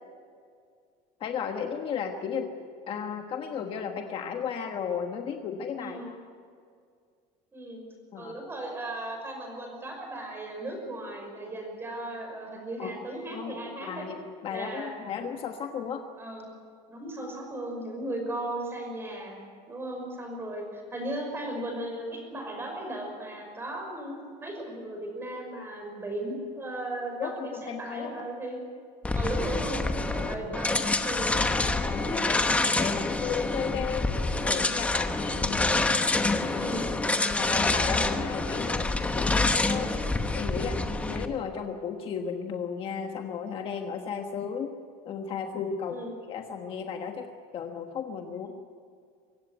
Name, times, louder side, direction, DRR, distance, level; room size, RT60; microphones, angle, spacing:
voice 1, 1.2-6.2 8.1-8.3 12.8-12.9 13.3-16.0 27.2-28.2 30.4-30.6 31.8-34.1 34.4-36.7 37.1-38.8 39.2-39.9 40.3-44.7 45.0-46.0 46.3-47.3 47.5-48.5, left 7 dB, 35° left, 4 dB, 1.4 m, -34 dB
voice 2, 5.8-6.1 7.5-7.8 8.2-14.1 14.5-14.9 16.2-16.5 16.9-19.4 19.7-24.1 24.4-28.6 29.1-31.4 36.5-36.9 39.7-40.0 45.9-46.1 48.4-48.5, right 1 dB, 15° right, 2 dB, 5.7 m, -36 dB
sound 1, 29.0-41.3, left 2 dB, 10° left, 1.0 m, -27 dB
24.0 x 16.0 x 9.3 m, 2.2 s
cardioid pair, 170°, 15 cm